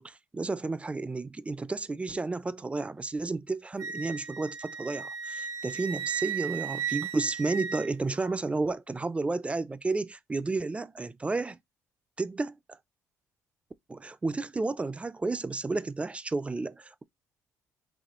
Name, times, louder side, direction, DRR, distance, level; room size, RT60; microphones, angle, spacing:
voice 1, 0.0-11.6 12.2-12.8 13.9-17.0, right 3 dB, 20° right, 0.4 m, -32 dB
Wind instrument woodwind instrument, 3.8-8.4, right 7 dB, 65° right, 1.1 m, -36 dB
4.1 x 2.9 x 2.9 m
supercardioid pair, 75°, 7 cm